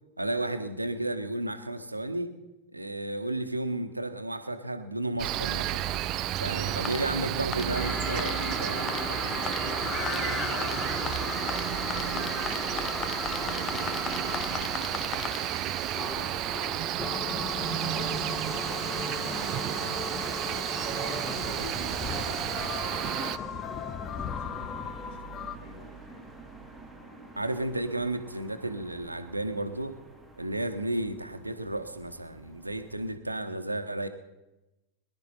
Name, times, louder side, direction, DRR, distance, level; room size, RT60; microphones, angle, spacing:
voice 1, 0.2-2.3 2.7-5.9 6.4-9.2 27.4-30.0 30.4-34.1, right 1 dB, 85° right, 9 dB, 1.1 m, -33 dB
Cricket, 5.2-23.4, right 13 dB, 35° right, 0.4 m, -32 dB
voice 2, 6.4-7.3 8.3-8.9 9.2-26.3, left 4 dB, 50° left, 4 dB, 2.6 m, -50 dB
sound 1, 6.6-25.6, left 7 dB, 25° left, 0.7 m, -36 dB
sound 2, 22.0-33.2, right 2 dB, ahead, 2.1 m, -48 dB
22.5 x 11.0 x 4.2 m, 0.99 s
figure-of-eight pair, 90°, 0 cm